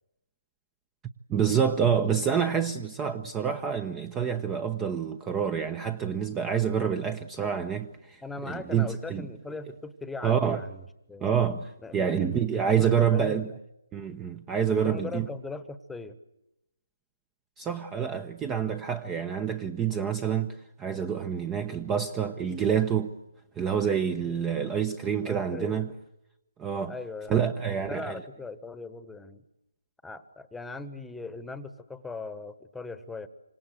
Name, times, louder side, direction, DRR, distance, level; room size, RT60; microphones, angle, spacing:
voice 1, 1.3-9.3 10.2-10.6 11.2-13.5 13.9-15.3 17.6-23.1 23.6-25.9 26.6-26.9 27.3-28.2, right 7 dB, 15° right, 0.9 m, -27 dB
voice 2, 8.2-11.3 11.8-13.6 14.7-16.2 19.1-19.2 24.1-24.4 25.2-25.8 26.9-29.4 30.0-33.3, left 3 dB, 5° left, 1.3 m, -40 dB
26.5 x 26.0 x 7.9 m
figure-of-eight pair, 150°, 0 cm